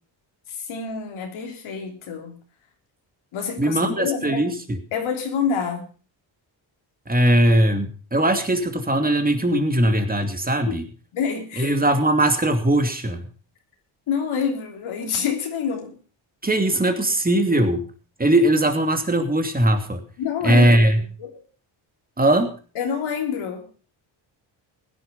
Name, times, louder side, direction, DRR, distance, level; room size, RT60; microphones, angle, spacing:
voice 1, 0.5-2.4 3.3-4.4 4.9-5.9 11.1-11.7 14.1-16.0 20.2-21.3 22.7-23.7, left 6 dB, 80° left, 3 dB, 3.4 m, -27 dB
voice 2, 3.6-4.8 7.1-10.8 11.6-13.2 16.4-17.8 18.2-20.0 20.4-21.0 22.2-22.5, right 1 dB, 20° right, 6 dB, 2.8 m, -20 dB
16.5 x 10.5 x 5.4 m, 0.39 s
cardioid pair, 85°, 48 cm